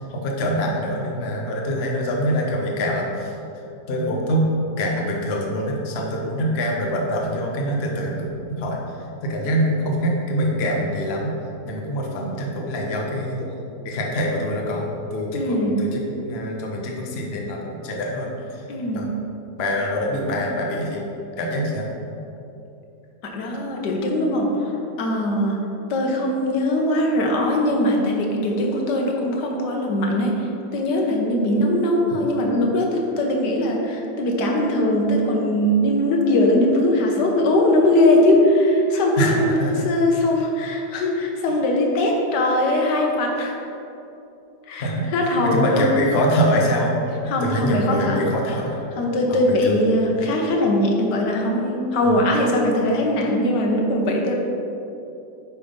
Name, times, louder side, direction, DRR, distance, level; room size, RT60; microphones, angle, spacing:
voice 1, 0.0-3.4 3.9-4.5 4.8-8.8 9.2-11.3 11.6-13.5 13.8-18.6 18.9-19.1 19.6-21.9 39.2-39.7 41.5-41.6 44.8-45.1 45.4-46.9 47.4-48.8 49.3-49.8 52.0-52.2, equal, 45° left, -1 dB, 0.9 m, -24 dB
voice 2, 15.3-15.8 18.7-19.1 23.2-24.7 25.0-25.6 25.9-30.4 30.7-43.6 44.7-45.9 47.3-48.2 49.0-54.3, left 1 dB, 65° left, 0 dB, 1.5 m, -20 dB
9.2 x 3.5 x 5.3 m, 2.9 s
omnidirectional pair, 2.1 m